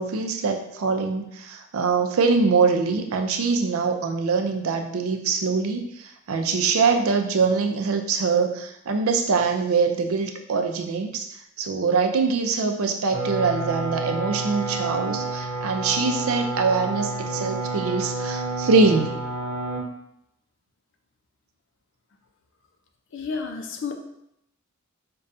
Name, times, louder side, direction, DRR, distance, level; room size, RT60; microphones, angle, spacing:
voice 1, 0.0-11.3 11.6-19.3, right 4 dB, 85° right, 6 dB, 0.5 m, -23 dB
sound 1, 13.1-19.8, right 2 dB, 50° right, 0.9 m, -29 dB
voice 2, 23.1-23.9, left 5 dB, 60° left, 4 dB, 0.5 m, -31 dB
5.3 x 2.3 x 2.5 m, 0.78 s
head